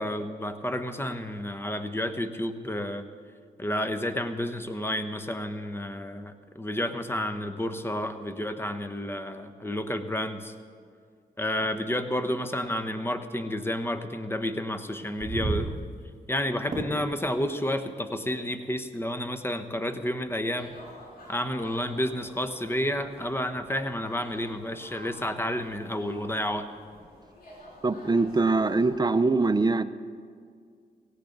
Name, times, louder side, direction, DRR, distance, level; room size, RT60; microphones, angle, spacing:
voice 1, 0.0-3.1 3.6-10.5 11.4-15.7 16.3-20.7 21.3-26.7, left 1 dB, 15° left, 9 dB, 1.0 m, -30 dB
sound 1, 15.0-27.0, right 3 dB, 45° right, 2.9 m, -41 dB
sound 2, 20.6-29.0, left 1 dB, 60° left, 5.0 m, -50 dB
voice 2, 27.8-29.8, right 3 dB, 25° right, 12 dB, 0.6 m, -23 dB
17.5 x 17.0 x 3.9 m, 2.1 s
cardioid pair, 70°, 17 cm